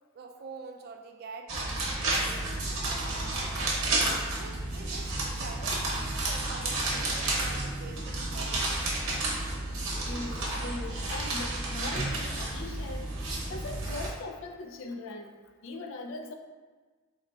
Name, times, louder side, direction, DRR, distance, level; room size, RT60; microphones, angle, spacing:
voice 1, 0.1-1.8 2.2-3.9 4.3-8.8, right 4 dB, 45° right, 4 dB, 0.3 m, -46 dB
sound 1, 1.5-14.1, right 2 dB, 80° right, 0.8 m, -31 dB
voice 2, 10.0-13.1 13.5-15.4 15.6-16.3, left 2 dB, 65° left, 5 dB, 0.3 m, -40 dB
3.1 x 2.2 x 3.8 m, 1.4 s
head